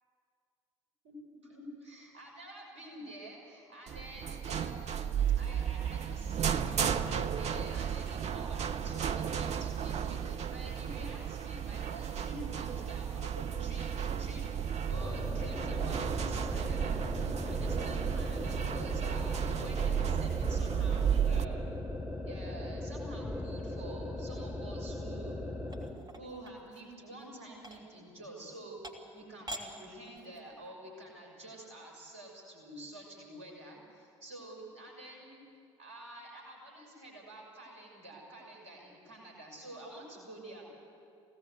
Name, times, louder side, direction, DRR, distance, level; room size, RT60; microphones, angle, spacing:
voice 1, 1.4-21.8 22.2-25.4 26.2-28.8 29.1-35.4 35.8-40.6, right 1 dB, 75° right, -1 dB, 6.2 m, -48 dB
sound 1, 3.9-21.4, right 8 dB, 45° right, 0.9 m, -33 dB
sound 2, 14.9-26.0, left 1 dB, 10° right, 4.5 m, -39 dB
sound 3, 25.7-26.9 27.6-27.8 28.5-28.6 28.8-29.2 29.5-29.6 30.0-30.5, right 1 dB, 25° right, 3.1 m, -45 dB
24.5 x 18.0 x 8.1 m, 2.4 s
figure-of-eight pair, 50°, 15 cm